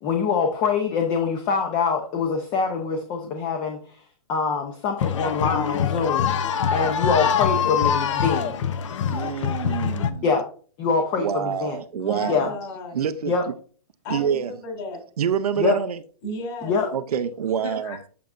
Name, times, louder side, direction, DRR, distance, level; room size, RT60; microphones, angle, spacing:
voice 1, 0.0-3.8 4.3-8.6 10.2-10.4 10.8-11.8 12.3-12.5 13.3-13.4 15.6-15.8 16.6-16.9, left 5 dB, 20° left, 0.7 m, -24 dB
sound 1, 5.0-10.1, left 8 dB, 55° left, 0.7 m, -24 dB
voice 2, 9.1-10.3 11.2-12.5 12.9-13.3 14.1-14.5 15.2-16.0 16.9-18.0, right 8 dB, 80° right, 0.7 m, -26 dB
voice 3, 11.9-13.0 14.0-15.0 16.2-16.7 17.6-18.1, left 2 dB, 35° left, 3.2 m, -34 dB
8.5 x 5.6 x 2.5 m
hypercardioid pair, 160°, 19 cm